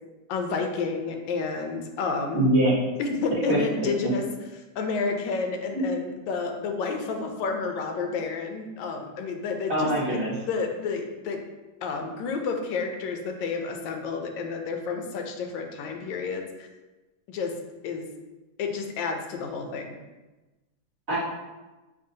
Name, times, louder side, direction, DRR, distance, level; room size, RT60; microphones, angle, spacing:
voice 1, 0.3-2.5 3.0-4.2 4.8-9.9 10.5-11.4 11.8-16.7 17.3-17.5 17.8-18.1 18.6-20.0, left 4 dB, 75° left, 3 dB, 1.2 m, -30 dB
voice 2, 2.3-2.8 3.5-3.9 5.7-5.8 9.7-10.3 21.1-21.2, right 1 dB, 40° right, -8 dB, 1.3 m, -23 dB
6.2 x 2.4 x 2.7 m, 1.1 s
omnidirectional pair, 2.1 m